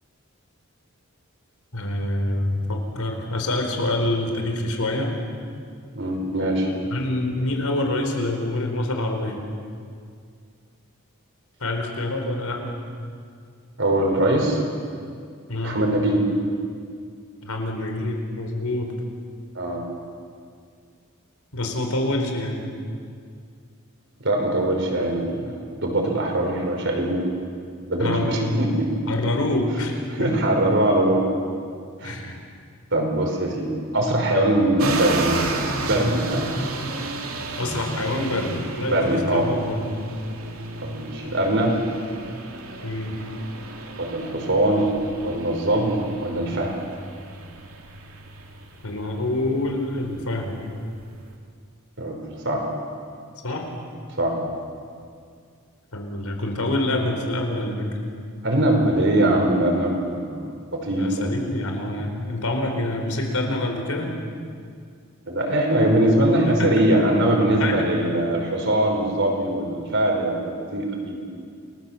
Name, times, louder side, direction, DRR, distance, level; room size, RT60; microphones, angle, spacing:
voice 1, 1.7-5.1 6.9-9.4 11.6-12.7 15.5-15.8 17.4-18.9 21.5-22.6 28.0-28.4 29.1-30.3 32.0-32.4 37.6-39.8 42.8-43.2 48.8-50.6 53.4-53.7 55.9-57.9 60.9-64.1 66.6-66.7 67.6-67.9, left 1 dB, 85° left, 3 dB, 4.4 m, -26 dB
voice 2, 5.9-6.7 13.8-14.6 15.6-16.3 19.6-19.8 24.2-27.2 27.9-28.9 30.1-31.2 32.0-32.2 32.9-35.4 35.8-36.5 38.9-39.5 40.8-41.8 44.0-44.9 45.2-46.7 52.0-52.2 52.5-52.7 54.2-54.4 58.4-61.3 65.3-71.2, right 1 dB, 60° right, 1 dB, 5.2 m, -22 dB
sound 1, 34.8-51.3, right 2 dB, 75° right, 2.9 m, -32 dB
29.0 x 20.0 x 7.6 m, 2.2 s
head